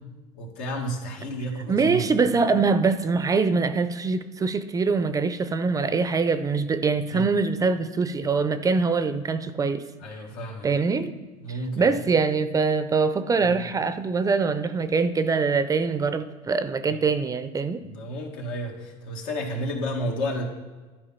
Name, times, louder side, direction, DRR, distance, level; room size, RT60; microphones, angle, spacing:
voice 1, 0.4-2.0 7.1-7.3 10.0-10.7 11.4-11.9 13.4-13.5 16.9-17.0 17.8-20.4, equal, 80° left, 1 dB, 1.8 m, -31 dB
voice 2, 1.7-9.9 10.6-11.1 11.5-17.8, right 4 dB, 20° right, 11 dB, 0.5 m, -23 dB
11.0 x 4.6 x 5.7 m, 1.3 s
supercardioid pair, 115°, 16 cm